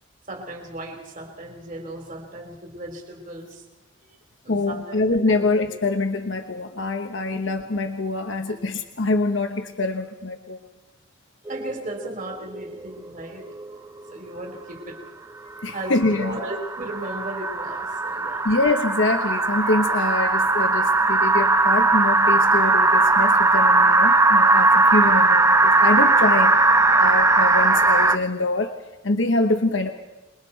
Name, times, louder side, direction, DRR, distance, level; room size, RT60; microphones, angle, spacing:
voice 1, 0.3-3.6 4.4-5.8 8.4-8.6 11.5-13.5 14.1-15.0 15.7-18.5 26.2-26.7, right 1 dB, 40° right, 1 dB, 3.6 m, -36 dB
voice 2, 4.5-10.6 15.6-16.4 18.4-26.6 26.9-28.7 29.0-29.9, left 2 dB, 70° left, 6 dB, 1.1 m, -25 dB
sound 1, 11.5-13.1 13.4-14.1 15.7-28.2, right 3 dB, 15° right, 0.6 m, -19 dB
27.5 x 21.5 x 4.5 m, 1.1 s
head